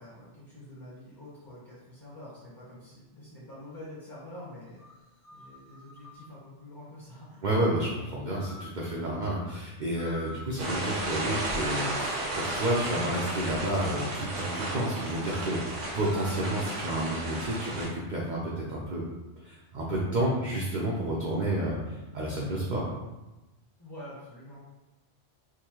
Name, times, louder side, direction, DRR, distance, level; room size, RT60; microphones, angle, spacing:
voice 1, 0.0-4.8 5.3-7.4 23.8-24.6, left 1 dB, 20° left, -8 dB, 0.9 m, -46 dB
sound 1, 3.7-3.8 4.8-6.3 8.3-8.8 10.0-10.5 11.2-11.5 11.8-12.7 15.3-15.6 16.0-17.8, left 2 dB, 70° left, 1.3 m, -49 dB
voice 2, 7.4-19.0 19.4-22.9, right 1 dB, 55° right, -4 dB, 0.6 m, -30 dB
sound 2, 10.6-17.9, right 2 dB, 80° right, 1.2 m, -34 dB
3.6 x 2.6 x 3.0 m, 1.1 s
omnidirectional pair, 1.3 m